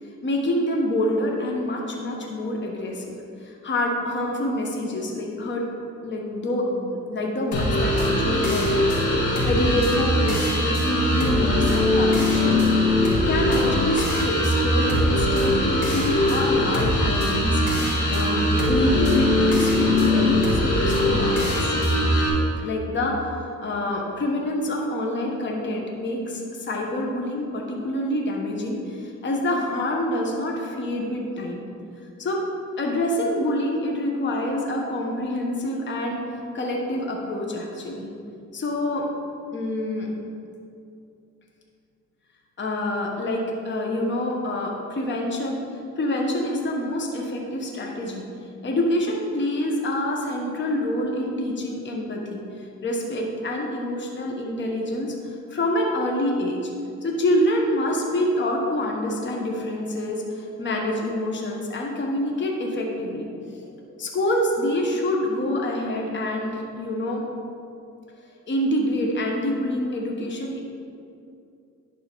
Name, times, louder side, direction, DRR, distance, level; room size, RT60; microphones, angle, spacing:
voice 1, 0.2-3.1 3.4-5.6 6.0-8.7 9.4-12.8 13.3-17.6 18.1-21.7 22.6-31.7 32.2-32.4 32.8-36.2 36.5-38.1 38.5-39.1 39.5-40.1 42.6-45.6 46.0-48.2 48.6-56.7 57.0-67.2 68.5-70.6, left 1 dB, 40° left, 0 dB, 1.0 m, -26 dB
sound 1, 7.5-22.3, left 1 dB, 80° left, 1.7 m, -21 dB
10.5 x 3.7 x 4.5 m, 2.5 s
cardioid pair, 90°, 30 cm